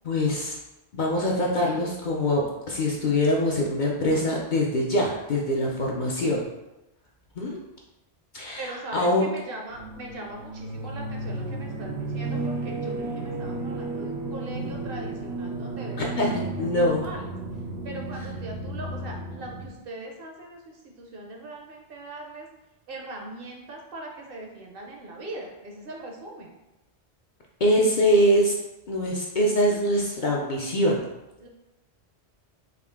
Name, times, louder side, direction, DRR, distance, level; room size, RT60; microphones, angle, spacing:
voice 1, 0.0-0.6 0.9-6.5 7.4-7.6 8.3-8.6 8.9-9.3 16.0-17.1 27.6-28.6 28.9-31.0, equal, 55° left, -2 dB, 0.6 m, -23 dB
voice 2, 8.6-17.3 17.8-22.5 22.9-26.6 31.4-31.5, right 2 dB, 60° right, 1 dB, 0.8 m, -40 dB
sound 1, 9.7-19.7, right 2 dB, 85° right, 0.9 m, -33 dB
3.7 x 2.8 x 3.5 m, 0.98 s
omnidirectional pair, 1.1 m